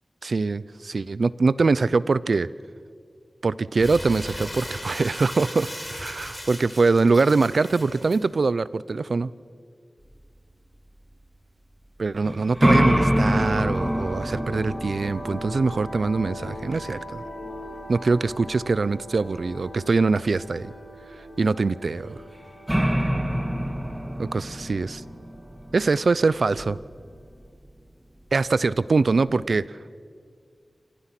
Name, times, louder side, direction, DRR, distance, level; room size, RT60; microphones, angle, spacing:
voice 1, 0.2-2.5 3.4-9.3 12.0-17.3 17.9-20.7 21.4-22.2 24.2-25.0 25.7-26.8 28.3-29.7, right 3 dB, 70° right, 18 dB, 0.6 m, -23 dB
Crumpling crinkling, 3.8-8.2, equal, 10° left, 5.9 m, -37 dB
sound 1, 12.2-18.9 22.2-22.3 22.7-27.0, equal, 15° right, 2.1 m, -26 dB
sound 2, 13.2-27.3, left 1 dB, 75° left, 5.7 m, -41 dB
29.0 x 26.0 x 6.1 m, 2.1 s
wide cardioid pair, 65°, 0 cm